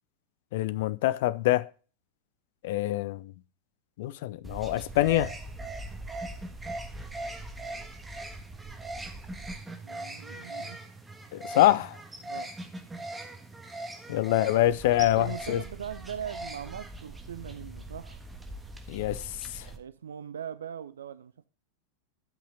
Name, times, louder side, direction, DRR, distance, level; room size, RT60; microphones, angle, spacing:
voice 1, 0.5-1.7 2.6-3.3 4.0-5.3 11.3-12.0 14.1-15.6 18.9-19.7, left 15 dB, 50° left, 0.5 m, -25 dB
sound 1, 4.4-19.8, right 2 dB, 10° right, 1.6 m, -40 dB
voice 2, 9.8-10.8 12.2-12.5 15.0-18.2 19.7-21.3, right 8 dB, 65° right, 0.4 m, -40 dB
12.0 x 5.6 x 4.1 m
figure-of-eight pair, 90°, 0 cm